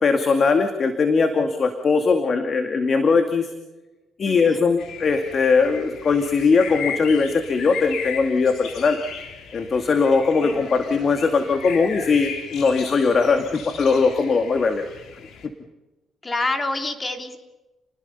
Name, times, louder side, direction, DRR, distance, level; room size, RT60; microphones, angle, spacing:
voice 1, 0.0-3.5 4.2-9.0 9.5-14.8, left 4 dB, 45° left, 6 dB, 2.2 m, -20 dB
voice 2, 4.2-4.6 10.4-10.7 16.2-17.4, left 2 dB, 25° left, 6 dB, 3.1 m, -28 dB
sound 1, 4.8-15.5, left 7 dB, 75° left, 3.6 m, -36 dB
29.5 x 20.0 x 5.7 m, 1.1 s
cardioid pair, 90°, 0 cm